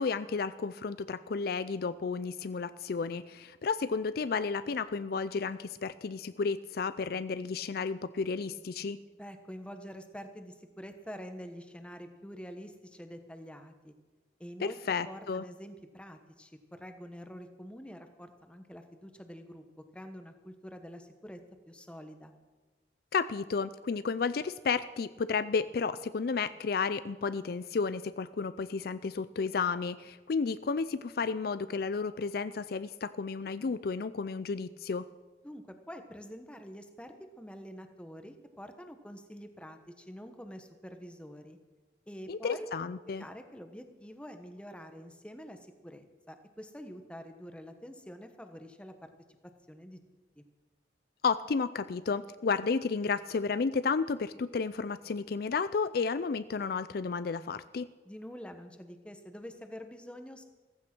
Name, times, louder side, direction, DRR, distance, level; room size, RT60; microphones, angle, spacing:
voice 1, 0.0-9.0 14.6-15.4 23.1-35.0 42.3-43.2 51.2-57.9, left 5 dB, 55° left, 14 dB, 0.4 m, -32 dB
voice 2, 9.2-13.9 14.4-14.8 15.0-19.6 19.9-21.4 21.7-22.4 35.4-41.6 42.1-42.7 43.0-49.1 49.7-50.0 50.4-50.5 58.0-60.4, equal, 5° left, 7 dB, 1.2 m, -46 dB
15.0 x 15.0 x 6.1 m, 1.3 s
head